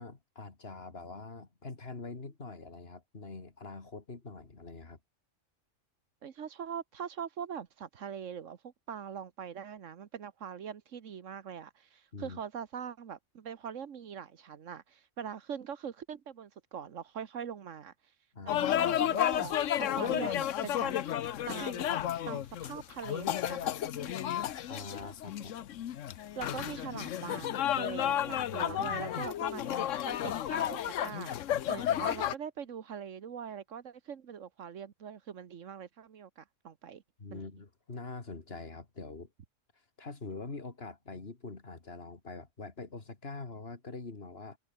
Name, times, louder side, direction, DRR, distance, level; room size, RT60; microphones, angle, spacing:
voice 1, 0.0-5.0 12.1-12.4 18.3-18.6 24.7-25.6 28.5-29.1 37.2-39.3 40.0-44.6, left 3 dB, 55° left, 2.6 m, -44 dB
voice 2, 6.2-17.9 18.6-20.9 21.5-22.0 22.3-24.2 26.4-31.4 31.7-37.0 37.3-37.4, right 7 dB, 85° right, 1.5 m, -42 dB
sound 1, 18.5-32.4, left 11 dB, 80° left, 1.1 m, -32 dB
omnidirectional pair, 1.3 m